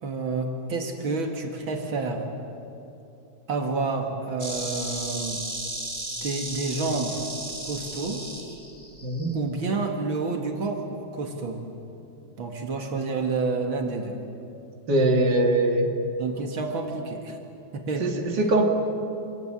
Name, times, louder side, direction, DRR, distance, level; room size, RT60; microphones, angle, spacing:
voice 1, 0.0-2.3 3.5-5.4 6.2-7.3 7.6-8.3 9.3-10.9 11.1-11.6 12.4-14.2 16.2-17.4 17.7-18.1, right 3 dB, 80° right, 2 dB, 2.8 m, -29 dB
Insect, 4.4-9.4, right 1 dB, 10° right, 3.3 m, -35 dB
voice 2, 9.0-9.3 14.9-15.9 18.0-18.7, right 1 dB, 60° right, 2 dB, 2.7 m, -22 dB
27.0 x 20.0 x 9.0 m, 2.8 s
omnidirectional pair, 2.2 m